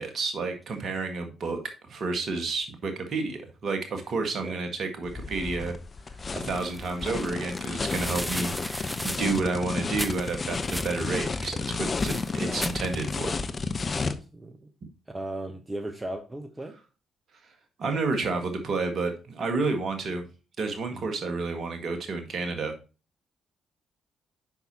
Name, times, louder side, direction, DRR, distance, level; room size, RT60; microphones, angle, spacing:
voice 1, 0.0-1.6 1.9-5.7 6.3-13.4 17.8-20.2 20.6-22.7, right 3 dB, 50° right, 6 dB, 1.7 m, -30 dB
sound 1, 5.0-14.1, left 4 dB, 35° left, 0.8 m, -32 dB
sound 2, 6.5-13.4, equal, ahead, 0.4 m, -38 dB
voice 2, 12.4-12.7 14.0-14.7 15.1-16.8 20.9-21.1, right 1 dB, 20° right, 6 dB, 1.1 m, -37 dB
9.0 x 5.9 x 2.8 m, 0.32 s
figure-of-eight pair, 40°, 0 cm